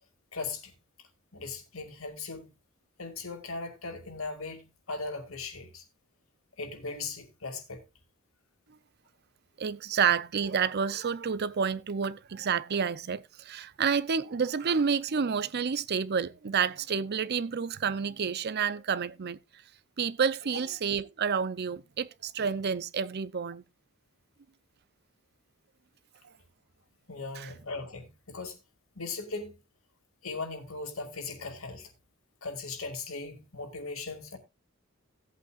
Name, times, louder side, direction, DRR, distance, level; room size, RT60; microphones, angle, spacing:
voice 1, 0.3-0.7 1.3-2.6 3.0-5.8 6.6-7.8 27.1-28.6 28.9-29.6 30.2-31.9 32.4-34.4, left 3 dB, 85° left, 2.3 m, -38 dB
voice 2, 9.6-19.4 20.0-23.6 27.4-27.5, right 6 dB, 50° right, 0.5 m, -29 dB
16.5 x 8.4 x 2.4 m
head